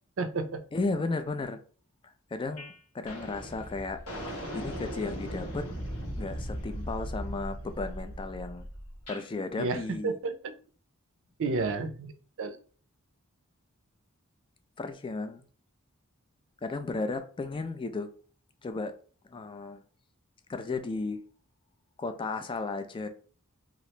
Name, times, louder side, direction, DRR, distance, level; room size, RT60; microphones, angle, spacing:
voice 1, 0.2-0.6 9.6-10.5 11.4-12.1 12.4-12.6, right 3 dB, 65° right, 9 dB, 0.5 m, -31 dB
voice 2, 0.7-1.6 2.3-4.0 4.5-5.7 6.2-8.7 9.1-10.1 14.8-15.4 16.6-18.1 18.6-18.9 19.3-19.8 20.5-21.2 22.0-23.1, left 3 dB, 25° left, 9 dB, 0.3 m, -34 dB
sound 1, 2.6-2.8 3.1-9.3, equal, 90° left, 1.0 m, -38 dB
2.9 x 2.5 x 3.1 m, 0.42 s
head